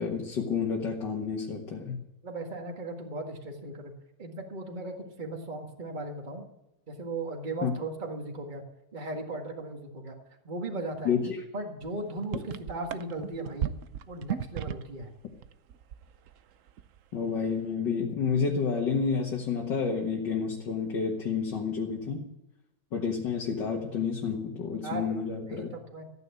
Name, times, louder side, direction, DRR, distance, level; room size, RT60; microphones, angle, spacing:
voice 1, 0.0-2.0 7.6-7.7 11.1-11.4 17.1-22.3 22.9-25.7, left 6 dB, 60° left, 0 dB, 2.2 m, -30 dB
voice 2, 2.2-3.9 4.2-6.5 6.9-8.7 8.9-10.2 10.4-11.1 11.5-13.8 14.1-15.1 24.8-25.1 25.4-26.1, right 2 dB, 25° right, 2 dB, 1.8 m, -37 dB
sound 1, 11.8-11.9 12.2-15.0 15.3-16.4 16.7-17.0, right 10 dB, 85° right, 0.7 m, -35 dB
14.5 x 9.5 x 8.3 m, 0.91 s
omnidirectional pair, 2.2 m